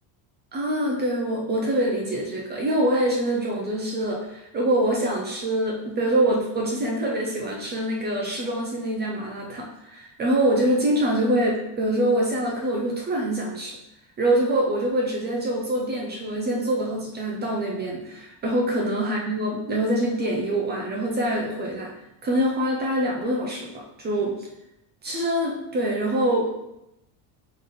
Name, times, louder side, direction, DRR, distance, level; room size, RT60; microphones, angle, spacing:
voice 1, 0.5-13.7 14.2-21.9 22.2-24.4 25.0-26.5, right 1 dB, 25° right, -2 dB, 0.3 m, -25 dB
3.8 x 3.3 x 4.0 m, 0.88 s
cardioid pair, 165°, 48 cm